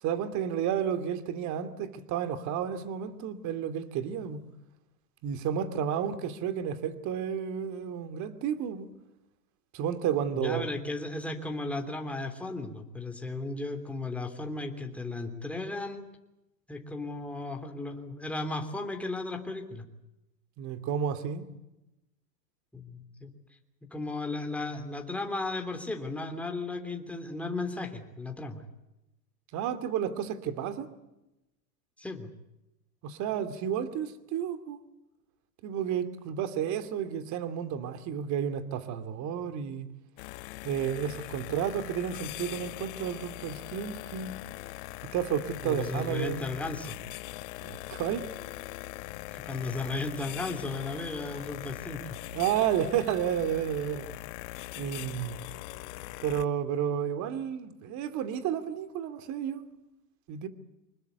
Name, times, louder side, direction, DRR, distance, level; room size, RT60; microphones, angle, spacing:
voice 1, 0.0-4.4 5.2-8.9 9.7-10.7 20.6-21.4 29.5-30.9 33.0-34.8 35.6-39.9 40.6-44.4 45.1-46.5 47.6-48.2 52.3-54.0 54.8-55.4 56.2-59.6 60.3-60.5, right 9 dB, 35° right, 2.6 m, -31 dB
voice 2, 10.3-16.1 16.7-19.8 22.7-23.3 23.9-28.6 32.0-32.3 45.6-47.0 49.3-52.2, left 2 dB, 5° left, 3.0 m, -35 dB
sound 1, 40.2-56.5, left 19 dB, 45° left, 1.1 m, -41 dB
26.0 x 20.5 x 8.2 m
hypercardioid pair, 130°, 49 cm